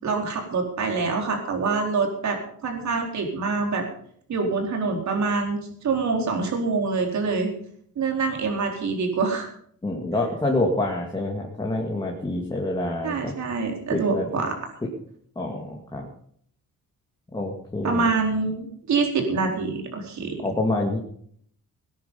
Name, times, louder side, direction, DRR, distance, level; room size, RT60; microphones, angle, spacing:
voice 1, 0.0-3.8 4.3-7.5 8.0-9.5 13.0-14.5 17.8-20.4, right 4 dB, 60° right, 2 dB, 4.2 m, -25 dB
voice 2, 9.8-13.3 13.9-14.3 15.4-16.1 17.3-18.1 20.4-21.0, left 2 dB, 15° left, -1 dB, 2.3 m, -27 dB
19.5 x 10.0 x 5.5 m, 0.62 s
cardioid pair, 140°, 32 cm